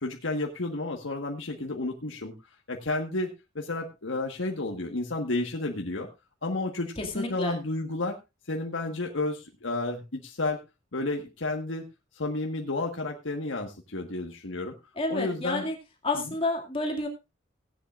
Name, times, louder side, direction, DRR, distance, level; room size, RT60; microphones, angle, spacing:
voice 1, 0.0-2.3 2.7-6.1 6.4-8.2 8.5-10.6 10.9-11.8 12.1-14.7 15.1-15.7 16.1-16.3, left 2 dB, 80° left, 2 dB, 1.5 m, -31 dB
voice 2, 7.0-7.6 15.0-15.7 16.0-17.1, left 2 dB, 30° left, 2 dB, 2.1 m, -29 dB
17.0 x 10.5 x 2.5 m, 0.25 s
head